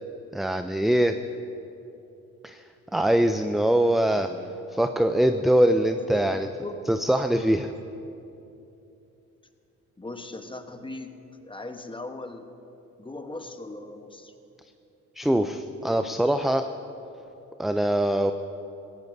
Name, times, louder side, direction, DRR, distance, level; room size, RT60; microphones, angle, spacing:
voice 1, 0.3-1.2 2.4-2.6 2.9-4.3 4.7-6.5 6.9-7.7 15.2-16.7 17.6-18.3, right 1 dB, ahead, 8 dB, 0.4 m, -23 dB
voice 2, 4.1-4.6 6.1-6.9 10.0-12.5 13.0-14.3, left 2 dB, 15° left, 7 dB, 1.1 m, -39 dB
17.0 x 15.0 x 2.7 m, 2.8 s
supercardioid pair, 60°, 32 cm